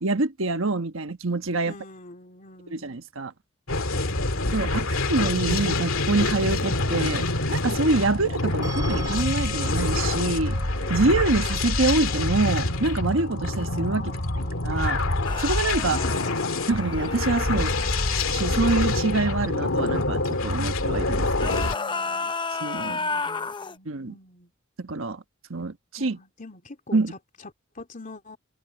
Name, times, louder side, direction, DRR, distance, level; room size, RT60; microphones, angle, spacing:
voice 1, 0.0-1.7 2.7-3.3 4.5-10.6 10.9-14.1 14.6-15.0 15.4-16.0 16.7-17.7 18.3-21.7 22.6-23.0 23.8-24.1 24.8-25.2 25.5-26.2 26.9-27.1, right 3 dB, 70° right, 1.3 m, -26 dB
voice 2, 1.6-2.9 4.0-4.7 13.9-14.6 15.7-16.8 17.5-18.3 21.5-22.3 22.9-24.5 25.6-25.7 26.0-28.4, left 2 dB, 40° left, 3.0 m, -45 dB
sound 1, 3.7-21.7, left 2 dB, 85° left, 2.1 m, -26 dB
sound 2, 8.6-21.6, right 2 dB, 15° right, 3.1 m, -46 dB
sound 3, 15.2-18.4 21.3-23.8, left 4 dB, 25° left, 0.7 m, -32 dB
head